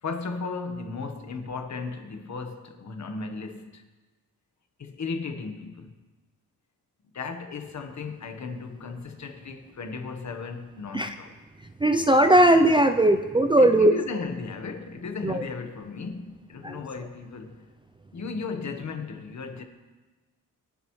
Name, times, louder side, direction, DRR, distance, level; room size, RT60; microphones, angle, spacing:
voice 1, 0.0-3.9 4.8-5.9 7.1-11.3 13.6-17.7 18.1-19.6, left 4 dB, 50° left, 1.3 m, -35 dB
voice 2, 11.8-13.9 15.2-15.4 16.6-16.8, right 1 dB, 15° right, 0.4 m, -19 dB
22.5 x 11.0 x 3.2 m
wide cardioid pair, 150°, 37 cm